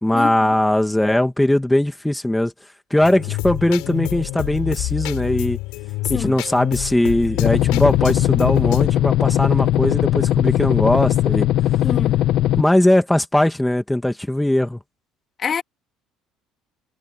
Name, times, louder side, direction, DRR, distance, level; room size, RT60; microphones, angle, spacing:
voice 1, 0.0-2.5 2.9-5.6 6.1-11.5 12.6-14.8, left 1 dB, 5° left, 1.9 m, -19 dB
sound 1, 3.0-8.9, left 21 dB, 85° left, 4.7 m, -27 dB
sound 2, 7.4-12.6, left 13 dB, 65° left, 1.3 m, -19 dB
voice 2, 11.8-12.1 15.4-15.6, left 7 dB, 35° left, 2.3 m, -25 dB
cardioid pair, 130°, 0 cm